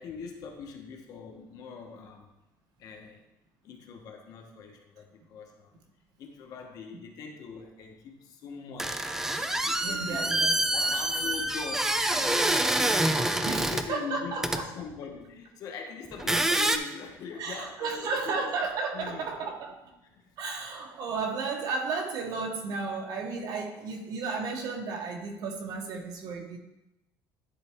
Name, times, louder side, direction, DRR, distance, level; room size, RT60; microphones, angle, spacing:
voice 1, 0.0-2.3 2.8-3.2 3.6-5.8 6.2-9.1 9.6-10.4 10.7-18.5 18.9-19.6 20.0-20.4, left 6 dB, 50° left, 3 dB, 1.0 m, -42 dB
sound 1, 8.8-13.9 14.4-14.6 16.1-16.8, right 1 dB, 5° right, 0.3 m, -26 dB
voice 2, 9.8-11.0 13.4-14.7 17.4-19.7 20.4-26.6, right 4 dB, 55° right, 3 dB, 1.1 m, -33 dB
10.5 x 4.1 x 3.5 m, 0.95 s
cardioid pair, 160°, 8 cm